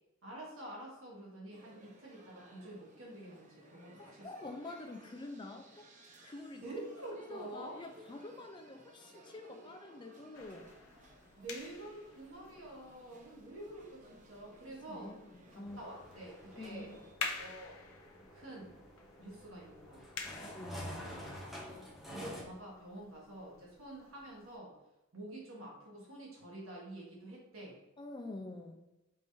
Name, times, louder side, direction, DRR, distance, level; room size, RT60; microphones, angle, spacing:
voice 1, 0.2-4.3 6.5-7.8 11.4-15.1 15.5-16.9 17.4-17.8 18.3-18.7 19.2-20.0 21.7-24.7 25.1-27.8, right 1 dB, 70° right, -4 dB, 1.3 m, -48 dB
sound 1, 1.5-17.1, right 1 dB, 35° right, 0.6 m, -60 dB
voice 2, 3.9-5.9 6.2-6.6 7.3-10.7 14.9-15.8 16.6-17.0 20.4-21.1 28.0-28.8, left 2 dB, 20° left, 5 dB, 0.4 m, -47 dB
sound 2, 10.3-24.6, left 5 dB, 80° left, 0.6 m, -49 dB
sound 3, 15.6-22.4, equal, ahead, 0.7 m, -49 dB
4.3 x 3.5 x 2.7 m, 0.97 s
head